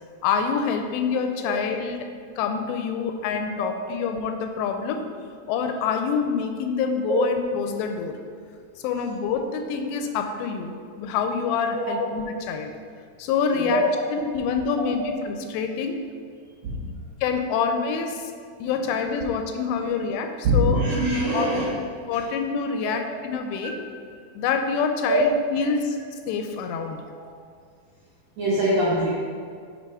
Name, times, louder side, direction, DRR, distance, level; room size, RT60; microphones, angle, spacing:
voice 1, 0.2-5.1 5.5-8.1 8.8-12.7 13.2-13.8 14.1-16.0 17.2-18.2 18.6-20.8 21.3-21.5 22.1-23.8 24.4-26.0 26.3-27.0, left 6 dB, 85° left, 6 dB, 2.7 m, -26 dB
voice 2, 13.5-14.0 16.6-16.9 18.6-18.7 19.8-19.9 20.4-21.7 25.1-25.3 25.6-25.7 27.2-27.3 28.4-29.1, right 1 dB, 80° right, -8 dB, 1.6 m, -23 dB
7.5 x 3.6 x 4.8 m, 2.2 s
omnidirectional pair, 4.9 m